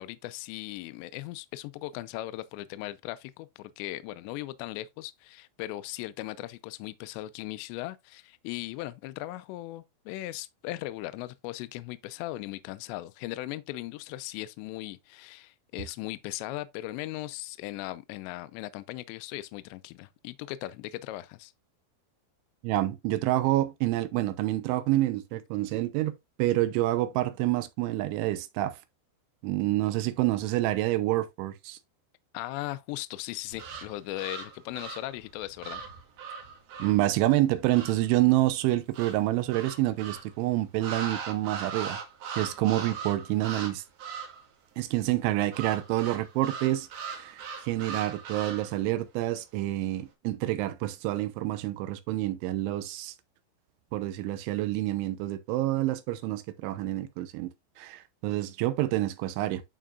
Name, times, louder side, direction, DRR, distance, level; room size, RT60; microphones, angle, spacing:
voice 1, 0.0-21.5 32.3-35.8, left 16 dB, 80° left, 2.7 m, -38 dB
voice 2, 22.6-28.8 29.4-31.8 36.8-42.0 42.4-43.8 44.8-53.1 53.9-57.5 57.8-59.6, right 16 dB, 85° right, 3.2 m, -28 dB
sound 1, 33.5-38.1 38.9-40.3 40.8-43.7 44.0-44.5 45.5-48.8, right 6 dB, 60° right, 3.6 m, -39 dB
11.5 x 4.6 x 2.4 m
omnidirectional pair, 5.4 m